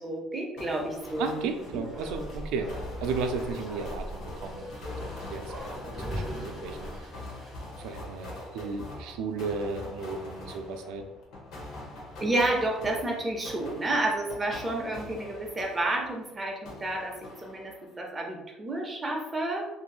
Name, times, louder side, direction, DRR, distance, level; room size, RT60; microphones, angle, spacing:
voice 1, 0.0-1.8 12.2-19.7, right 2 dB, 20° right, 0 dB, 0.6 m, -30 dB
sound 1, 0.6-16.3 16.6-18.0, left 2 dB, 65° left, 0.8 m, -43 dB
Bark, 1.2-8.8 9.1-9.2, equal, 20° left, 1.2 m, -41 dB
voice 2, 1.2-2.7 3.0-4.8 5.3-7.1 7.8-11.0, right 4 dB, 80° right, 5 dB, 0.3 m, -34 dB
2.9 x 2.6 x 2.3 m, 1.0 s
cardioid pair, 130°, 0 cm